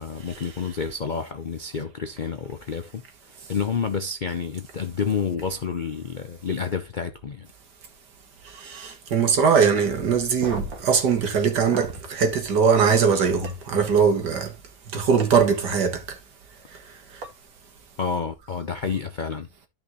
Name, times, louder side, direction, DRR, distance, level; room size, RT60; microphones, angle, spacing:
voice 1, 0.0-7.5 18.0-19.5, left 6 dB, 60° left, 0.5 m, -29 dB
voice 2, 8.5-14.5 14.9-16.2, right 6 dB, 80° right, 2.2 m, -21 dB
sound 1, 10.3-12.1 13.4-13.5 15.2-15.3 17.2-17.3 18.7-18.9, right 3 dB, 60° right, 2.1 m, -35 dB
12.5 x 5.6 x 3.0 m
omnidirectional pair, 1.8 m